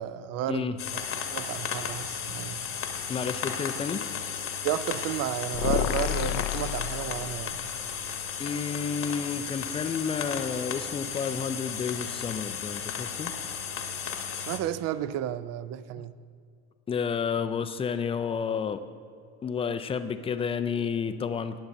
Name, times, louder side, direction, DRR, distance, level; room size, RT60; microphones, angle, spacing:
voice 1, 0.0-2.7 4.6-7.7 14.5-16.1, right 11 dB, 45° right, 0.5 m, -32 dB
sound 1, 0.8-14.6, left 7 dB, 40° left, 1.0 m, -34 dB
voice 2, 3.1-4.1 8.4-13.3 16.0-16.1 16.9-18.8 19.4-21.6, left 6 dB, 15° left, 0.3 m, -31 dB
sound 2, 5.5-7.7, left 13 dB, 75° left, 0.5 m, -30 dB
19.0 x 7.0 x 2.6 m
supercardioid pair, 105°, 36 cm